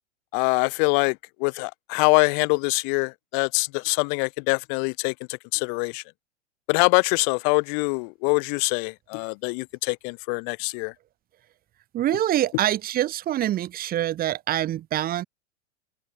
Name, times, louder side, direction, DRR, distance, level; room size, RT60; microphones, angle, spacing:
voice 1, 0.3-6.0 6.7-10.9, left 40 dB or more, 40° left, 0.8 m, -24 dB
voice 2, 11.9-15.3, right 13 dB, 25° right, 1.2 m, -25 dB
hypercardioid pair, 130°, 36 cm